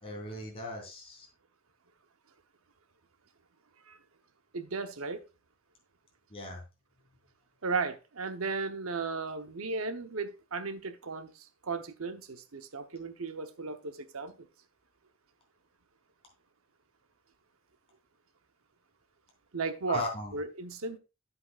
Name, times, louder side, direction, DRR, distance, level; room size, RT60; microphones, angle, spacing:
voice 1, 0.0-1.3 6.3-6.6 19.9-20.3, left 2 dB, 25° left, 3.4 m, -38 dB
voice 2, 4.5-5.2 7.6-14.3 19.5-20.0 20.3-21.0, right 4 dB, 85° right, 0.9 m, -35 dB
9.7 x 7.9 x 2.4 m
head